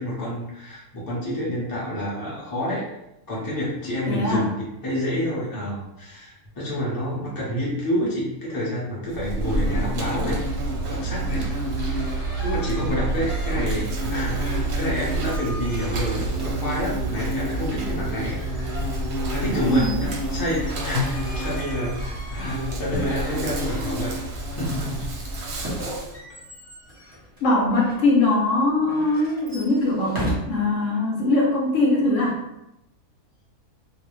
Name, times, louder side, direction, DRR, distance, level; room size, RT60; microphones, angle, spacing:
voice 1, 0.0-2.9 3.3-4.5 4.8-10.4 10.9-11.5 12.4-18.4 19.3-19.9 20.3-24.1 24.5-25.0, equal, 20° left, -6 dB, 0.6 m, -28 dB
voice 2, 4.1-4.5 19.6-20.1 27.4-32.4, left 2 dB, 70° left, -2 dB, 0.9 m, -21 dB
Insect, 9.1-26.1, right 1 dB, 60° right, 0.7 m, -28 dB
sound 1, 11.3-13.9 14.1-16.8 17.8-24.4 25.5-28.0 28.8-30.3, right 1 dB, 25° right, 0.7 m, -37 dB
2.4 x 2.0 x 3.0 m, 0.87 s
omnidirectional pair, 1.5 m